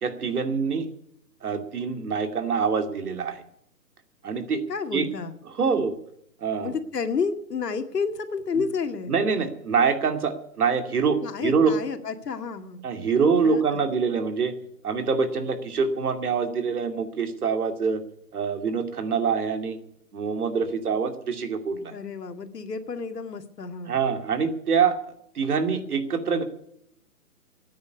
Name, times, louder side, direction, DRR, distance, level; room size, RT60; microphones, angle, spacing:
voice 1, 0.0-0.8 1.4-3.4 4.2-4.6 4.9-5.0 5.5-5.9 6.4-6.7 9.1-11.8 12.8-14.5 14.8-18.0 18.3-19.8 20.1-21.9 23.9-25.0 25.3-26.4, right 5 dB, 65° right, 7 dB, 2.7 m, -25 dB
voice 2, 4.7-5.3 6.6-9.1 11.2-12.8 13.4-14.0 21.9-24.0, left 5 dB, 75° left, 8 dB, 2.1 m, -30 dB
13.5 x 9.5 x 9.6 m, 0.71 s
hypercardioid pair, 160°, 48 cm